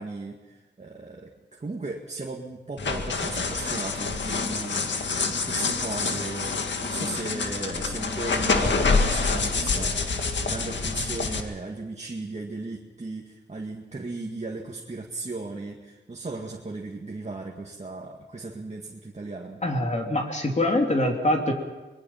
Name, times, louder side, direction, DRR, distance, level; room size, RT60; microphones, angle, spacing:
voice 1, 0.0-19.6, right 3 dB, 40° right, -1 dB, 2.1 m, -36 dB
sound 1, 2.8-11.4, left 4 dB, 80° left, 1.9 m, -27 dB
voice 2, 19.6-21.5, left 1 dB, 40° left, 2 dB, 3.3 m, -24 dB
25.0 x 21.0 x 5.8 m, 1.2 s
wide cardioid pair, 75°, 18 cm